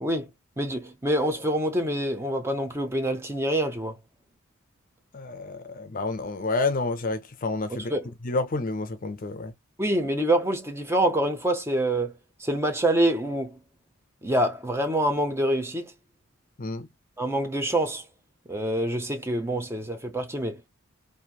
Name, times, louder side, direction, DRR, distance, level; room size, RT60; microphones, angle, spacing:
voice 1, 0.6-3.9 7.7-8.1 9.8-12.1 12.4-13.6 14.2-15.9 17.2-18.1 18.5-20.6, right 1 dB, 10° right, 0.5 m, -26 dB
voice 2, 5.1-7.9 8.2-9.5 16.6-16.9, left 3 dB, 40° left, 0.5 m, -29 dB
3.0 x 2.6 x 2.3 m
head